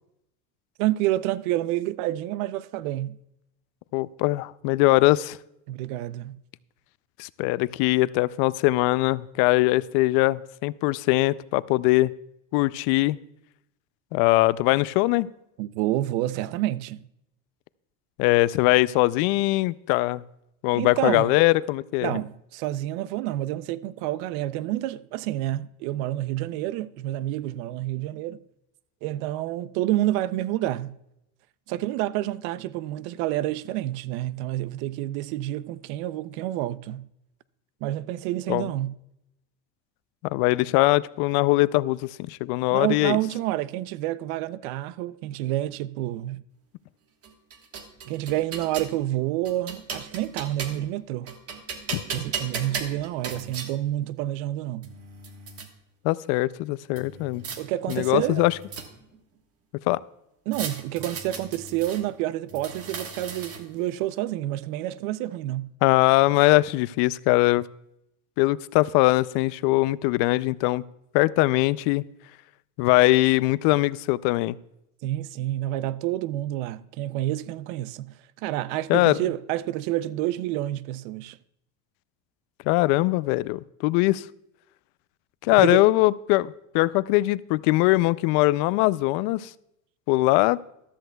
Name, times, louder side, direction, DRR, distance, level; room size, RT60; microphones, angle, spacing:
voice 1, 0.8-3.2 5.7-6.4 15.6-17.0 20.7-21.3 22.0-28.4 29.0-30.9 31.7-37.0 37.8-38.9 42.7-46.4 48.1-51.3 52.1-54.9 57.6-58.5 60.5-65.7 75.0-78.1 78.4-81.4 85.6-85.8, right 14 dB, 85° right, 0.6 m, -28 dB
voice 2, 3.9-5.4 7.2-12.1 12.5-13.2 14.1-15.3 18.2-20.2 20.6-22.2 38.5-38.7 40.2-43.2 51.9-52.0 56.0-57.4 57.9-58.6 59.9-60.0 65.8-67.6 68.4-70.8 71.1-72.0 72.8-74.6 78.9-79.2 82.7-84.3 85.4-89.5 90.1-90.6, left 19 dB, 75° left, 0.5 m, -21 dB
sound 1, 47.2-48.9 49.5-50.9 51.3-53.7 54.5-54.6 54.8-55.7 57.0-57.6 57.9-59.2 60.5-62.0 62.5-63.8, right 5 dB, 35° right, 1.4 m, -37 dB
14.0 x 13.0 x 2.3 m
cardioid pair, 145°, 40 cm